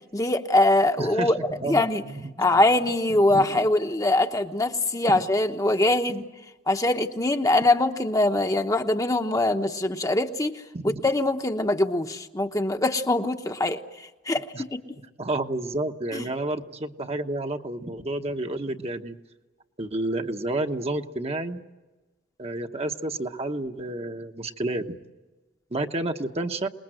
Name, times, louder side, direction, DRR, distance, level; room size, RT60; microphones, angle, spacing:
voice 1, 0.1-1.4 1.7-2.0 2.4-6.2 6.7-10.5 10.8-15.0 16.1-16.2, left 2 dB, 20° left, 6 dB, 1.0 m, -23 dB
voice 2, 1.0-2.6 3.1-3.7 5.1-5.2 10.7-11.0 14.5-14.6 15.2-19.2 19.8-21.6 22.4-25.0 25.7-26.7, right 2 dB, 35° right, 5 dB, 1.1 m, -30 dB
27.5 x 20.5 x 7.8 m, 1.2 s
head